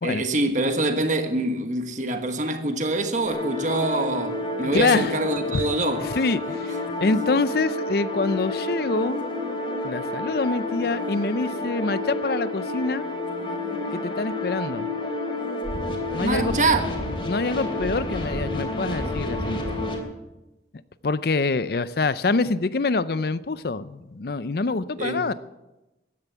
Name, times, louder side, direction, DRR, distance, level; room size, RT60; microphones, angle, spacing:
voice 1, 0.0-6.2 16.2-16.9 25.0-25.3, right 2 dB, 45° right, 1.4 m, -25 dB
sound 1, 3.3-20.0, left 2 dB, 30° left, 3.0 m, -29 dB
voice 2, 4.7-5.1 5.5-5.6 6.0-9.2 9.8-13.1 13.9-14.9 16.1-16.6 17.2-19.6 21.0-25.3, left 3 dB, 60° left, 0.5 m, -25 dB
15.5 x 10.5 x 7.2 m
head